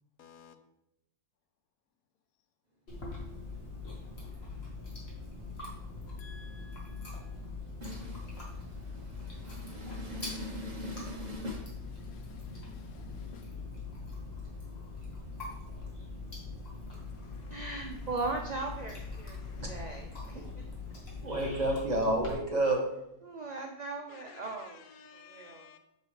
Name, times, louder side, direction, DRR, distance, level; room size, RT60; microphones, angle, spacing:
voice 1, 0.2-0.5 6.2-7.1 9.7-10.1 11.4-13.5 17.0-20.0 20.3-20.4 22.3-22.5 24.1-25.8, left 6 dB, 75° left, 1.1 m, -57 dB
Chewing mastication, 2.9-22.3, left 3 dB, 45° left, 1.8 m, -42 dB
voice 2, 7.8-8.4 8.8-11.6 19.6-19.7 21.2-22.8, right 1 dB, 30° right, 1.2 m, -33 dB
voice 3, 17.5-19.4 19.7-20.6 23.2-24.8 25.1-25.7, right 3 dB, 70° right, 0.4 m, -38 dB
6.5 x 6.4 x 3.2 m
omnidirectional pair, 1.6 m